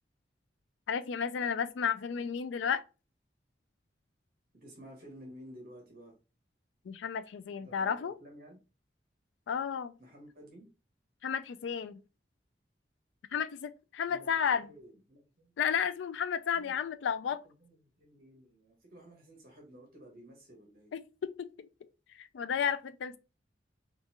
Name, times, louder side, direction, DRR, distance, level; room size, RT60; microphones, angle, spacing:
voice 1, 0.9-2.8 6.8-8.1 9.5-9.9 11.2-12.0 13.3-14.7 15.6-17.4 20.9-21.5 22.1-23.2, left 7 dB, 90° left, 0.3 m, -32 dB
voice 2, 4.5-6.1 7.6-8.6 10.0-10.6 14.1-15.5 16.5-16.8 17.2-20.9, equal, 50° right, 1.1 m, -53 dB
3.8 x 2.4 x 2.8 m
head